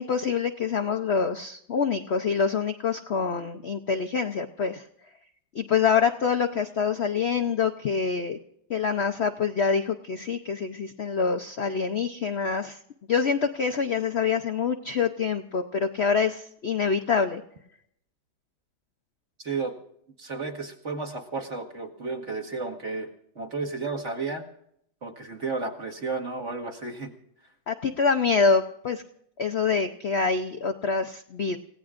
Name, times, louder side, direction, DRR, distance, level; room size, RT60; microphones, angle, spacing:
voice 1, 0.0-4.9 5.5-8.4 8.7-12.8 13.1-17.4 27.7-29.0 29.4-31.6, left 5 dB, 80° left, 5 dB, 0.5 m, -26 dB
voice 2, 19.4-19.7 20.2-23.1 23.4-24.5 25.0-27.1, right 4 dB, 40° right, 0 dB, 2.0 m, -32 dB
29.0 x 16.5 x 2.5 m, 0.71 s
omnidirectional pair, 2.0 m